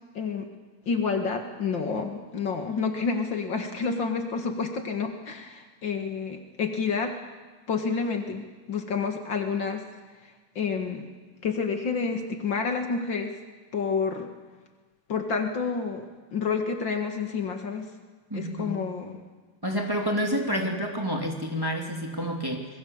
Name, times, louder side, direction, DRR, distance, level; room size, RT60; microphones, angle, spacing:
voice 1, 0.1-0.5 0.9-7.1 7.7-9.8 10.6-11.1 11.4-13.3 13.7-14.3 15.1-16.1 16.3-17.9 18.3-19.1, left 5 dB, 60° left, 5 dB, 2.6 m, -29 dB
voice 2, 18.3-18.7 19.6-22.7, equal, 10° right, 1 dB, 2.7 m, -29 dB
26.5 x 21.5 x 7.2 m, 1.3 s
omnidirectional pair, 2.3 m